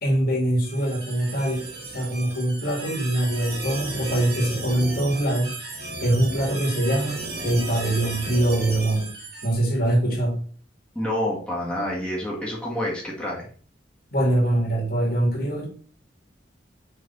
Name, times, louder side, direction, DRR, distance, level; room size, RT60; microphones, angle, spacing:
voice 1, 0.0-5.6 6.0-7.2 7.4-9.1 9.4-10.4 14.1-15.7, right 1 dB, 55° left, -3 dB, 2.7 m, -23 dB
sound 1, 0.6-9.5, right 2 dB, 60° right, 2.8 m, -34 dB
voice 2, 10.9-13.4, left 1 dB, 5° left, -5 dB, 2.1 m, -28 dB
6.2 x 4.0 x 4.2 m, 0.43 s
head